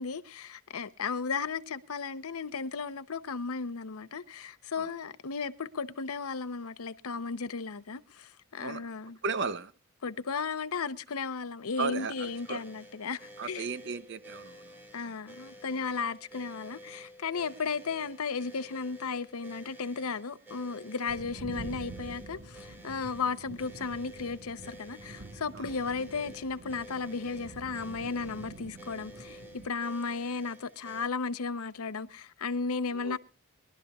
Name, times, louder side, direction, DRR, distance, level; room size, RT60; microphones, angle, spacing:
voice 1, 0.0-9.2 10.0-13.6 14.9-33.2, left 5 dB, 80° left, 0.7 m, -35 dB
voice 2, 9.2-9.7 11.8-12.6 13.4-15.2 25.5-25.7 32.9-33.2, right 4 dB, 55° right, 0.7 m, -35 dB
sound 1, 11.7-31.1, equal, 10° right, 1.8 m, -51 dB
sound 2, 21.1-29.7, right 2 dB, 70° right, 1.3 m, -47 dB
23.0 x 12.0 x 2.3 m
head